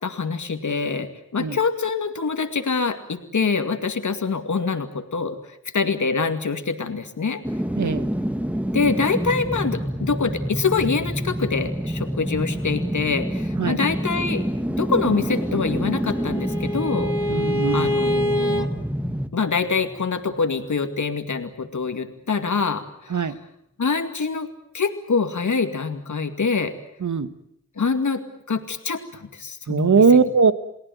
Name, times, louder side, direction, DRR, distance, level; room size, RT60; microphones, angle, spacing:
voice 1, 0.0-7.4 8.7-14.4 14.8-17.1 17.7-18.7 19.3-23.3 23.8-24.5 24.7-26.7 27.8-28.2 28.5-30.2, left 5 dB, 75° left, 7 dB, 2.3 m, -25 dB
sound 1, 7.4-20.5 20.8-20.9, equal, 5° right, 1.7 m, -27 dB
voice 2, 7.8-8.1 13.6-13.8 17.3-17.9 23.1-23.4 27.0-27.3 29.7-30.5, right 5 dB, 75° right, 12 dB, 1.6 m, -19 dB
Bowed string instrument, 15.5-18.7, equal, 15° left, 3.2 m, -26 dB
29.5 x 18.5 x 9.4 m, 0.76 s
cardioid pair, 40°, 30 cm